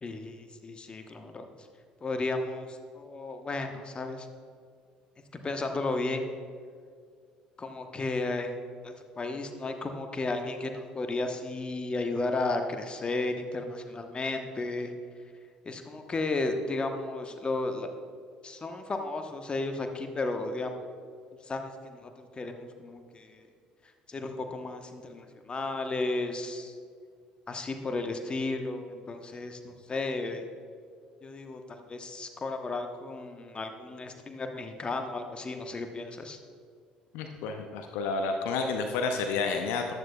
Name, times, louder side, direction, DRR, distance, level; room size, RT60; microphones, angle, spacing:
voice 1, 0.0-1.5 2.0-4.3 5.3-6.3 7.6-8.6 8.8-14.9 15.6-17.9 18.4-20.8 21.5-23.4 24.1-26.7 27.5-30.4 31.2-36.4, left 2 dB, 25° left, 5 dB, 1.1 m, -34 dB
voice 2, 37.1-39.9, left 4 dB, 60° left, 4 dB, 0.6 m, -30 dB
14.0 x 10.5 x 2.3 m, 2.1 s
figure-of-eight pair, 55°, 4 cm